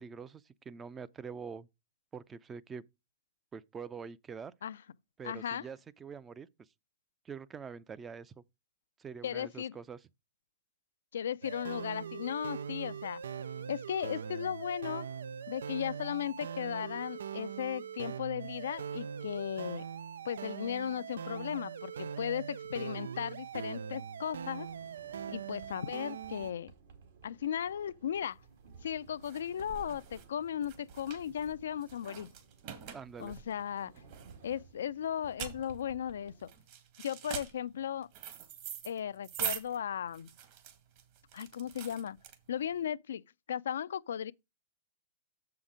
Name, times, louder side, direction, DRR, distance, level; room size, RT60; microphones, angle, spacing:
voice 1, 0.0-1.7 2.1-2.8 3.5-4.5 5.2-6.5 7.2-8.4 9.0-10.0 32.9-33.4, right 6 dB, 20° right, 0.5 m, -45 dB
voice 2, 5.2-5.6 9.2-9.8 11.1-13.2 13.7-15.1 15.5-19.8 20.2-24.7 25.3-26.7 27.2-28.4 28.8-32.3 33.2-33.9 34.4-36.5 37.0-38.1 38.8-40.3 41.3-42.2 42.5-43.2 43.5-44.3, left 9 dB, 80° left, 0.4 m, -36 dB
sound 1, 11.4-26.5, right 7 dB, 85° right, 0.3 m, -42 dB
Sliding door, 24.3-36.5, right 5 dB, 70° right, 2.3 m, -57 dB
sound 2, 28.4-42.8, right 10 dB, 50° right, 1.9 m, -44 dB
7.1 x 5.7 x 5.0 m
hypercardioid pair, 130°, 0 cm